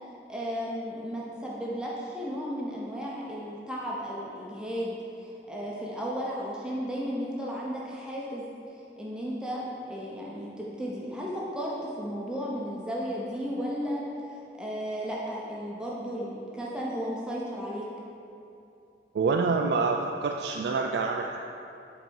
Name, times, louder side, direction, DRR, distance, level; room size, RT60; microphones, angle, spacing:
voice 1, 0.3-8.5 9.0-14.0 14.3-17.9, equal, 5° right, -5 dB, 0.7 m, -34 dB
voice 2, 19.1-21.4, right 4 dB, 70° right, 2 dB, 0.3 m, -27 dB
8.1 x 4.0 x 4.5 m, 2.7 s
head